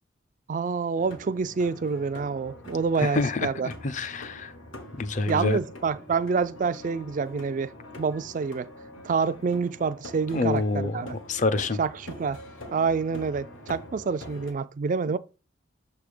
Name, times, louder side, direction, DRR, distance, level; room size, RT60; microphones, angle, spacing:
voice 1, 0.5-3.7 5.3-7.7 8.0-8.7 9.0-11.2 11.8-12.4 12.7-15.2, right 5 dB, 40° right, 0.3 m, -27 dB
sound 1, 1.0-14.5, left 1 dB, 75° left, 1.3 m, -44 dB
voice 2, 3.0-4.5 4.9-5.6 10.3-11.8, left 3 dB, 40° left, 0.5 m, -27 dB
6.8 x 3.5 x 5.0 m
head